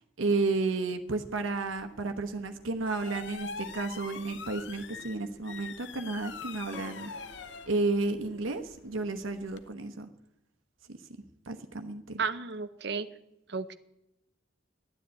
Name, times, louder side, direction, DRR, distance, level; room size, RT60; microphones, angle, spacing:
voice 1, 0.2-7.1 7.7-10.1 11.5-12.2, right 3 dB, 90° right, 7 dB, 1.0 m, -32 dB
sound 1, 1.1-9.7, left 5 dB, 65° left, 0.8 m, -45 dB
sound 2, 6.7-8.8, right 1 dB, 10° left, 1.7 m, -53 dB
voice 2, 12.2-13.1 13.5-13.7, right 5 dB, 55° right, 11 dB, 0.7 m, -33 dB
12.5 x 9.6 x 8.8 m, 0.88 s
head